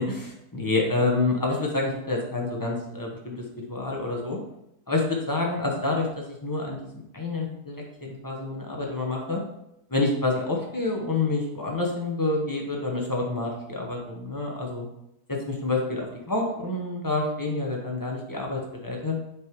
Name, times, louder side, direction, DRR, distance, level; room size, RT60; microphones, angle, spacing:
voice 1, 0.0-4.4 4.9-6.8 7.1-9.4 9.9-14.9 15.3-19.2, left 2 dB, 20° left, -1 dB, 0.7 m, -28 dB
6.4 x 3.2 x 4.6 m, 0.82 s
omnidirectional pair, 1.7 m